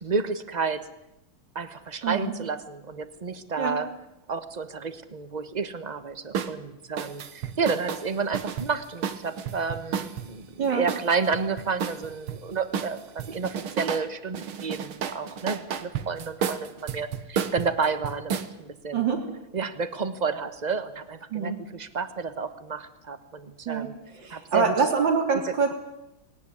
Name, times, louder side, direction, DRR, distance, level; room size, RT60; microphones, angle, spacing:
voice 1, 0.0-0.9 1.5-3.9 4.3-19.0 19.5-23.9 24.3-24.7 25.5-25.6, right 5 dB, 25° right, 11 dB, 1.1 m, -31 dB
voice 2, 2.0-2.3 3.6-3.8 10.6-10.9 18.9-19.3 21.3-21.6 23.7-23.9 24.1-25.7, right 5 dB, 60° right, 5 dB, 3.9 m, -25 dB
sound 1, 6.3-6.5 7.0-10.3 10.9-12.4 12.7-14.1 14.3-18.5, right 7 dB, 75° right, 2.1 m, -32 dB
20.0 x 18.5 x 9.8 m, 0.90 s
omnidirectional pair, 2.3 m